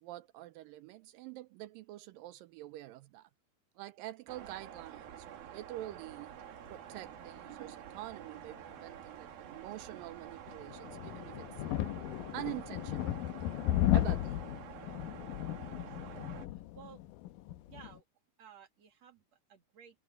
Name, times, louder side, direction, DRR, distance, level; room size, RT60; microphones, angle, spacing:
voice 1, 0.0-3.3 3.8-6.4 6.7-11.5 12.3-13.2 13.9-14.5, right 16 dB, 85° right, 2.0 m, -46 dB
sound 1, 4.3-16.5, right 9 dB, 65° right, 3.5 m, -49 dB
sound 2, 10.5-18.0, left 14 dB, 85° left, 1.9 m, -35 dB
voice 2, 16.0-17.0 17.7-18.0 18.4-20.0, right 7 dB, 50° right, 2.7 m, -56 dB
omnidirectional pair, 4.7 m